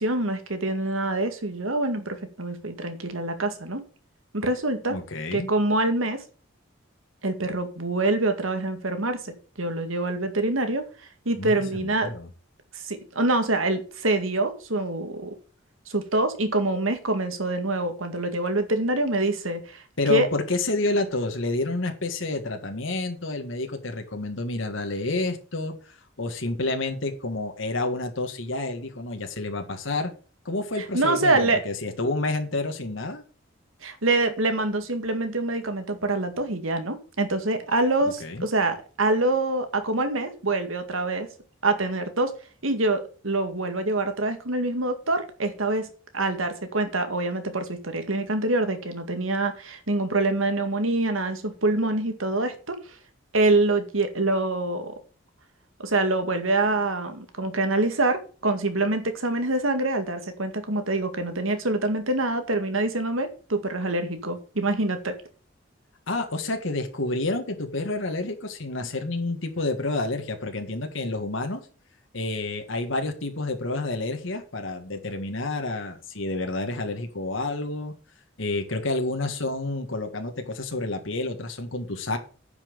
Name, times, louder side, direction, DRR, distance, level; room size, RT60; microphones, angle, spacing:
voice 1, 0.0-3.8 4.3-5.0 5.3-6.2 7.2-10.9 11.3-12.1 12.7-15.4 15.9-19.8 20.1-20.3 30.8-31.6 33.8-41.3 41.6-42.4 42.6-53.0 53.3-54.9 55.8-65.2, right 2 dB, 80° right, 8 dB, 2.1 m, -25 dB
voice 2, 4.9-5.5 11.4-12.3 20.0-25.7 26.2-30.1 30.5-33.2 38.2-38.5 66.1-71.6 72.1-77.9 78.4-82.2, left 2 dB, 70° left, 5 dB, 1.8 m, -29 dB
10.0 x 5.9 x 7.0 m, 0.39 s
head